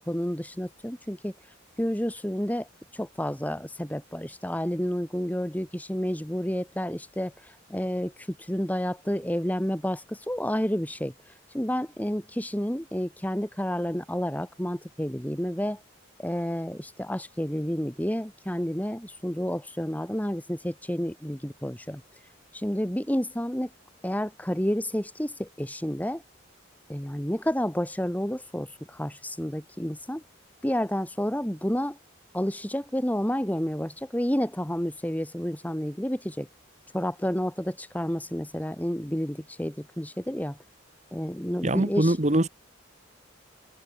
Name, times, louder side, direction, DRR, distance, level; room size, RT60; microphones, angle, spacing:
voice 1, 0.0-1.3 1.8-2.7 2.9-15.8 16.2-22.0 22.5-23.7 24.0-26.2 26.9-30.2 30.6-32.0 32.3-36.5 36.9-40.6 41.1-42.2, equal, 10° left, 2.1 m, -30 dB
voice 2, 41.6-42.5, right 1 dB, 35° right, 1.9 m, -23 dB
head